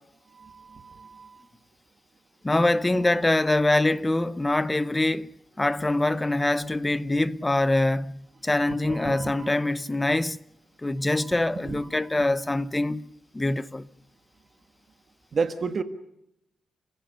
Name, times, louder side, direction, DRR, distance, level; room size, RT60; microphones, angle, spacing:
voice 1, 0.3-1.4 2.9-3.0 8.6-9.5 11.6-11.8 15.3-15.8, right 5 dB, 40° right, 1.6 m, -32 dB
voice 2, 2.4-5.3 5.6-10.4 10.8-13.0 13.3-13.9, left 2 dB, 15° left, 0.7 m, -24 dB
30.0 x 16.5 x 6.9 m
cardioid pair, 125°, 0 cm